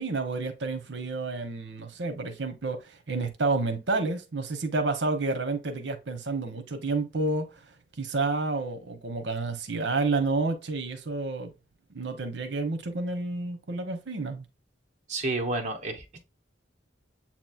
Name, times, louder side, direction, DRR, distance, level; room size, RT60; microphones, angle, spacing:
voice 1, 0.0-7.6 8.0-11.5 11.9-14.5, right 3 dB, 70° right, 0.9 m, -30 dB
voice 2, 15.1-16.3, right 2 dB, 40° right, 0.8 m, -31 dB
7.3 x 3.0 x 2.4 m
head